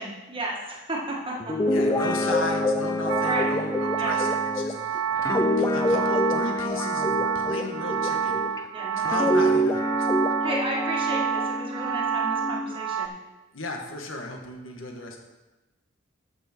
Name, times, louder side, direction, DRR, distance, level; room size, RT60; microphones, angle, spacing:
voice 1, 0.0-1.7 3.2-3.5 4.0-4.2 8.7-9.2 10.4-13.1, right 1 dB, 25° right, -2 dB, 1.8 m, -33 dB
Guitar, 1.4-8.6 9.0-12.8, left 1 dB, 15° left, 0.5 m, -26 dB
voice 2, 1.7-8.4 9.0-10.2 13.5-15.2, left 2 dB, 70° left, 2 dB, 1.5 m, -35 dB
sound 1, 3.1-13.1, right 7 dB, 85° right, 0.6 m, -29 dB
13.0 x 6.1 x 4.4 m, 1.1 s
head